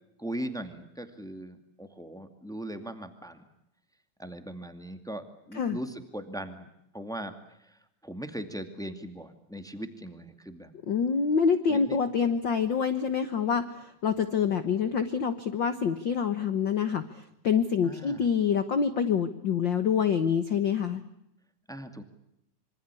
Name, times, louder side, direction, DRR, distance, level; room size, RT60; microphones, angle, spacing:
voice 1, 0.2-3.4 4.2-10.7 11.7-12.0 17.8-18.2 21.7-22.0, right 1 dB, ahead, 8 dB, 1.5 m, -39 dB
voice 2, 10.9-17.0 17.4-21.0, left 6 dB, 65° left, 10 dB, 1.1 m, -26 dB
26.5 x 25.5 x 8.4 m, 0.81 s
omnidirectional pair, 4.0 m